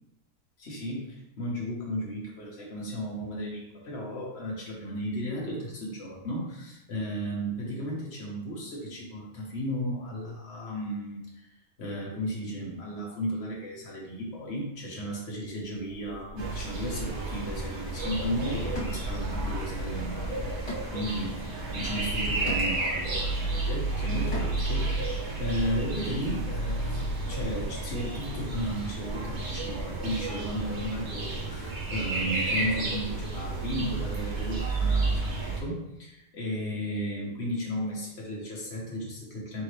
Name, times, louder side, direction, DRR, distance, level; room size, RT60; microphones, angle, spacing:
voice 1, 0.6-11.5 11.8-39.6, equal, 65° left, -4 dB, 1.3 m, -34 dB
sound 1, 15.5-20.6, left 1 dB, 35° left, 0.6 m, -41 dB
sound 2, 16.4-35.6, right 2 dB, 70° right, 1.3 m, -31 dB
sound 3, 18.7-19.7 20.0-24.8, left 1 dB, 85° left, 1.7 m, -42 dB
4.0 x 3.5 x 3.2 m, 0.85 s
omnidirectional pair, 1.2 m